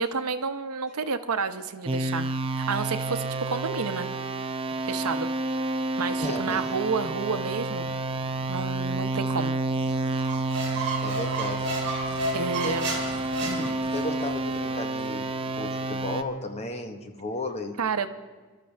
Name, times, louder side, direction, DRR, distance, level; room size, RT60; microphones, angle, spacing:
voice 1, 0.0-2.3 2.6-4.1 4.9-5.3 6.0-7.9 8.5-9.5 12.3-12.9 17.8-18.1, right 5 dB, 80° right, 10 dB, 0.8 m, -30 dB
sound 1, 1.9-16.2, right 2 dB, 25° right, 0.6 m, -30 dB
voice 2, 6.2-6.7 11.0-11.7 12.6-12.8 13.4-17.8, left 1 dB, 30° left, 5 dB, 1.1 m, -34 dB
sound 2, 9.7-15.2 15.7-15.8, left 1 dB, 10° left, 3.3 m, -50 dB
Squeak, 10.2-14.3, right 1 dB, 50° right, 3.2 m, -32 dB
24.5 x 12.5 x 3.4 m, 1.4 s
head